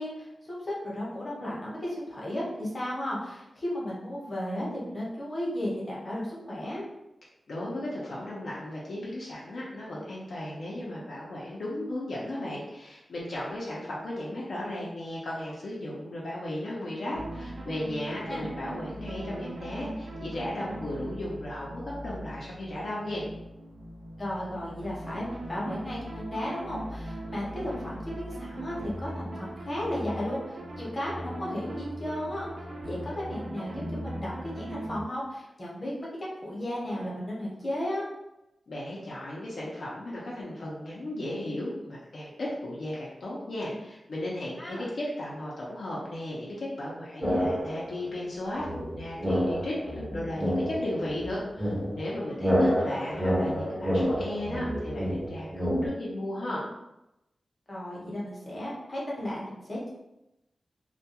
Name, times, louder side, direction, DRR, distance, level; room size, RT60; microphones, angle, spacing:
voice 1, 0.0-6.9 18.3-18.4 24.2-38.1 44.6-44.9 57.7-59.9, left 1 dB, 30° left, -5 dB, 0.8 m, -34 dB
voice 2, 7.5-23.3 38.7-48.7 48.9-56.6, left 1 dB, 70° left, -6 dB, 0.5 m, -35 dB
sound 1, 17.1-35.0, right 1 dB, 80° right, 0.4 m, -39 dB
sound 2, 47.2-48.0 48.6-55.9, equal, ahead, 0.5 m, -28 dB
2.2 x 2.2 x 2.8 m, 0.90 s
wide cardioid pair, 140°, 0 cm